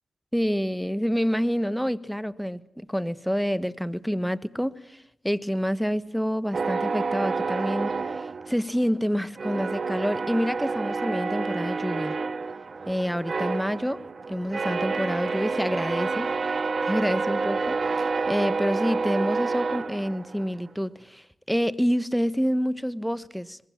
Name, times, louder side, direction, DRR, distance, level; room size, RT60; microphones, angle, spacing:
voice 1, 0.3-12.1 12.9-14.0 14.3-16.3 16.8-17.8 18.3-23.6, equal, ahead, 15 dB, 1.3 m, -27 dB
sound 1, 6.5-9.0 9.4-20.6, right 4 dB, 55° right, 0.9 m, -29 dB
24.0 x 21.0 x 7.3 m, 0.75 s
supercardioid pair, 40°, 0 cm